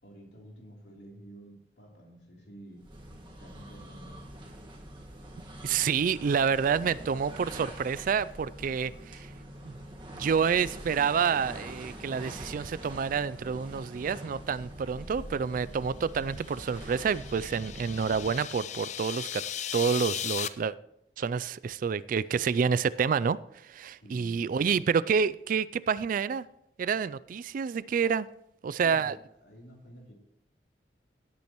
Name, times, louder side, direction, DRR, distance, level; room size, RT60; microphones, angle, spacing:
voice 1, 0.0-2.9 3.4-4.2 24.0-24.4 28.7-29.2 29.4-30.1, right 1 dB, 70° left, 3.3 m, -50 dB
sound 1, 2.8-18.6, right 1 dB, 30° right, 1.6 m, -44 dB
voice 2, 5.6-9.3 9.6-9.8 10.1-19.4 19.7-20.8 21.2-23.4 23.6-26.4 26.8-28.3 28.6-29.2, right 6 dB, 50° right, 0.3 m, -28 dB
sound 2, 16.3-20.5, left 10 dB, 45° left, 0.5 m, -37 dB
17.0 x 8.4 x 3.0 m
head